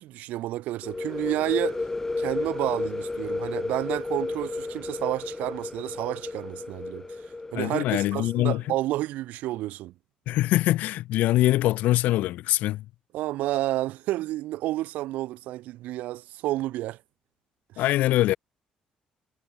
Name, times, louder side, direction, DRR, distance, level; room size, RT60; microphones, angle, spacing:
voice 1, 0.0-1.8 2.2-7.1 7.5-9.9 13.1-17.0 17.7-17.8, right 16 dB, 85° right, 0.6 m, -30 dB
sound 1, 0.8-8.4, left 3 dB, 15° left, 1.9 m, -32 dB
voice 2, 7.5-8.6 10.3-12.8 17.8-18.4, left 15 dB, 85° left, 0.8 m, -23 dB
cardioid pair, 125°, 3 cm